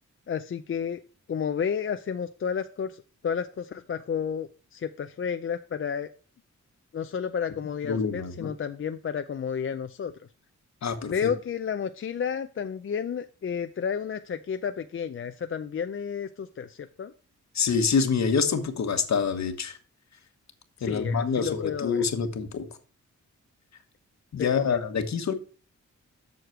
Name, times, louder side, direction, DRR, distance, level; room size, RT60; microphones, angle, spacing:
voice 1, 0.3-1.0 1.3-6.1 6.9-10.1 11.1-17.1 20.8-22.0 24.4-24.8, left 7 dB, 45° left, 0.5 m, -31 dB
voice 2, 7.9-8.5 10.8-11.3 17.5-19.8 20.8-22.7 24.3-25.3, left 5 dB, 60° left, 1.3 m, -26 dB
8.0 x 6.4 x 4.6 m
wide cardioid pair, 105°, 31 cm